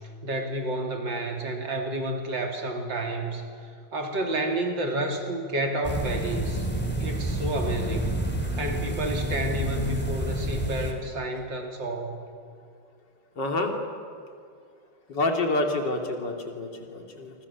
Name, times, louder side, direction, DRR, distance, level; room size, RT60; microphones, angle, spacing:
voice 1, 0.2-3.5 3.9-6.7 7.0-8.2 8.6-12.2, right 1 dB, 80° right, 2 dB, 3.8 m, -30 dB
voice 2, 4.2-4.6 13.4-13.8 15.1-17.3, left 2 dB, 70° left, 3 dB, 3.5 m, -28 dB
sound 1, 5.8-10.9, equal, 5° left, 3.0 m, -29 dB
28.0 x 25.5 x 7.3 m, 2.3 s
omnidirectional pair, 2.0 m